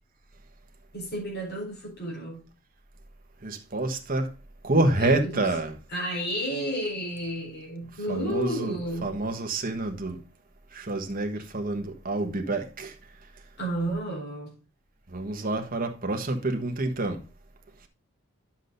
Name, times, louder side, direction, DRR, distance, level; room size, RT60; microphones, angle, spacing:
voice 1, 0.9-2.5 5.0-5.5 5.9-9.2 13.6-14.6, equal, 50° left, 4.3 m, -32 dB
voice 2, 3.4-4.3 4.6-5.8 8.1-10.2 10.7-12.9 15.1-17.2, right 2 dB, 40° right, 1.4 m, -28 dB
9.9 x 7.4 x 2.7 m
head